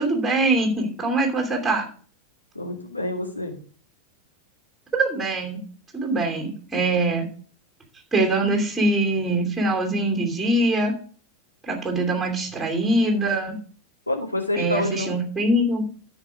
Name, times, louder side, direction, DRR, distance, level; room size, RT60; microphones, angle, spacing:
voice 1, 0.0-1.9 4.9-5.6 5.9-7.3 8.1-10.9 11.6-13.6 14.6-15.8, right 2 dB, 5° right, 1 dB, 2.8 m, -23 dB
voice 2, 2.5-3.5 14.1-15.1, left 2 dB, 85° left, 1 dB, 2.5 m, -27 dB
13.0 x 5.2 x 4.8 m, 0.43 s
figure-of-eight pair, 90°, 0 cm